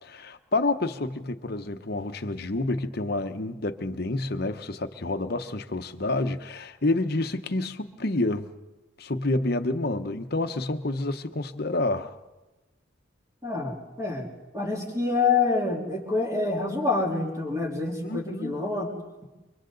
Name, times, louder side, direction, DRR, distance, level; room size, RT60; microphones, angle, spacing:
voice 1, 0.0-8.5 9.0-12.2 18.0-18.6, left 2 dB, 50° left, 0.9 m, -29 dB
voice 2, 13.4-18.9, left 3 dB, 15° right, 3.6 m, -27 dB
29.0 x 24.5 x 3.9 m
head